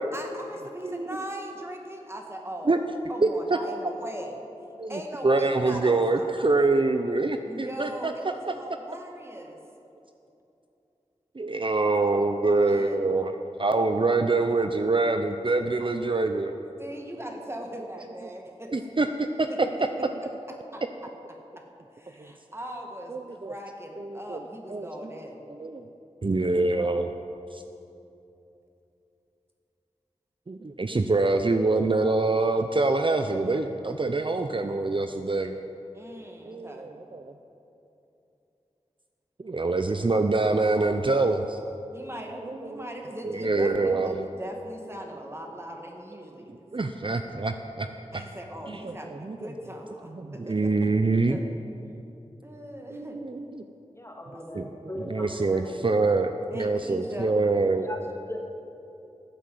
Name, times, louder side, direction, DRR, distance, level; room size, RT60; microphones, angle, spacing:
voice 1, 0.1-4.4 4.9-6.3 7.5-9.6 11.7-13.1 16.8-18.7 19.5-19.6 20.7-20.8 21.6-21.7 21.9-25.4 35.9-36.9 41.9-46.7 48.1-50.7 51.1-51.5 52.4-53.2 54.3-54.4 56.5-57.4, right 1 dB, 20° right, 1 dB, 1.9 m, -40 dB
voice 2, 0.8-1.2 2.6-2.8 3.2-3.6 3.8-3.9 4.8-8.1 8.5-8.6 11.3-16.6 18.7-19.7 20.0-20.1 22.2-22.3 23.1-23.6 24.0-24.4 24.7-25.1 25.5-25.9 26.2-27.1 27.5-27.6 30.5-35.6 36.4-37.3 39.4-41.6 42.4-42.9 43.2-44.3 46.2-46.3 46.7-47.9 48.1-48.2 48.7-49.5 50.1-51.4 52.9-53.7 54.5-54.7 55.0-57.9, right 3 dB, 45° right, 6 dB, 0.6 m, -25 dB
voice 3, 53.9-55.8 57.8-58.4, left 1 dB, 20° left, 0 dB, 2.2 m, -38 dB
14.5 x 8.3 x 7.8 m, 2.9 s
wide cardioid pair, 50°, 12 cm